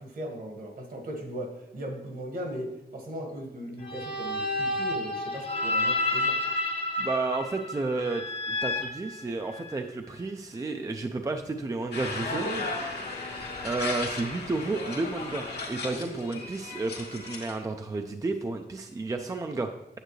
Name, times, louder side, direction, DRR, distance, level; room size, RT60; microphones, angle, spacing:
voice 1, 0.0-6.4 12.3-12.8 15.8-16.5, equal, 60° right, 3 dB, 1.5 m, -38 dB
sound 1, 3.8-9.8, left 2 dB, 35° left, 0.9 m, -30 dB
voice 2, 7.0-12.5 13.6-19.7, right 3 dB, 20° right, 5 dB, 0.4 m, -32 dB
sound 2, 11.9-17.5, left 3 dB, 80° left, 1.8 m, -36 dB
9.0 x 7.6 x 3.2 m, 0.88 s
wide cardioid pair, 170°, 17 cm